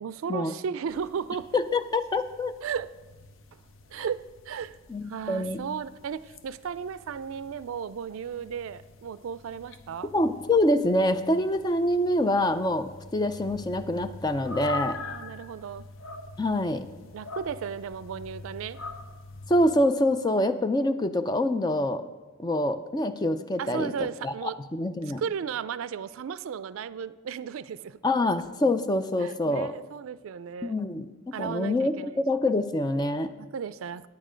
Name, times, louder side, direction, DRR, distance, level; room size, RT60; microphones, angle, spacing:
voice 1, 0.0-1.5 2.6-2.9 3.5-3.6 3.9-4.8 5.1-10.1 15.0-15.9 17.1-18.8 23.6-24.6 25.2-28.0 29.2-30.8 31.3-32.2 33.4-34.1, right 7 dB, 75° right, 16 dB, 0.3 m, -35 dB
sound 1, 0.9-19.8, left 3 dB, 70° left, 0.7 m, -44 dB
voice 2, 1.5-2.5 4.9-5.6 10.1-15.0 16.4-16.8 19.5-22.0 22.4-25.2 28.0-29.7 30.6-31.1 31.4-33.3, left 1 dB, 20° left, 10 dB, 0.3 m, -25 dB
9.5 x 8.8 x 5.0 m, 1.3 s
head